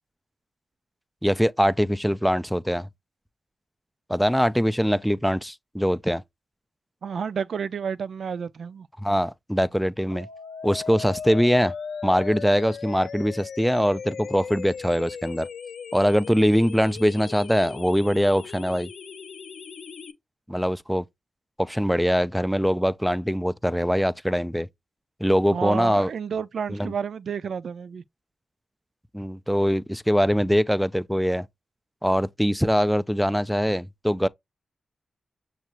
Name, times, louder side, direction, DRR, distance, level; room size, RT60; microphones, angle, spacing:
voice 1, 1.2-2.9 4.1-6.2 9.0-10.3 10.6-11.7 12.0-15.5 15.9-18.9 20.5-21.0 21.6-24.7 25.2-26.1 26.7-26.9 29.1-31.5 32.0-34.3, equal, ahead, 0.4 m, -22 dB
voice 2, 7.0-8.9 25.5-28.0, right 7 dB, 75° right, 0.3 m, -30 dB
sound 1, 10.1-20.1, left 6 dB, 85° left, 0.7 m, -37 dB
6.4 x 2.4 x 3.0 m
cardioid pair, 60°, 0 cm